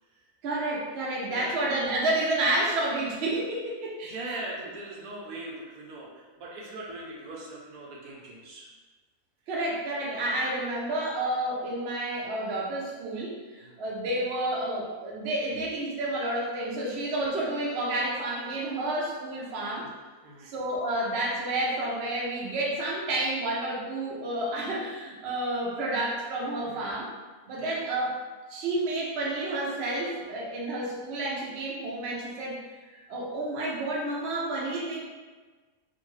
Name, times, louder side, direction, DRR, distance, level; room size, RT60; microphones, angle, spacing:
voice 1, 0.4-4.4 9.5-19.9 20.5-27.1 27.5-28.1 28.5-32.6 32.9-35.0, right 1 dB, 60° right, -4 dB, 0.8 m, -30 dB
voice 2, 1.3-1.6 4.0-8.7 13.6-13.8 19.8-19.9 20.2-20.5 26.6-26.9 27.6-27.8, right 2 dB, 80° right, -3 dB, 1.1 m, -41 dB
2.5 x 2.5 x 3.0 m, 1.4 s
omnidirectional pair, 1.5 m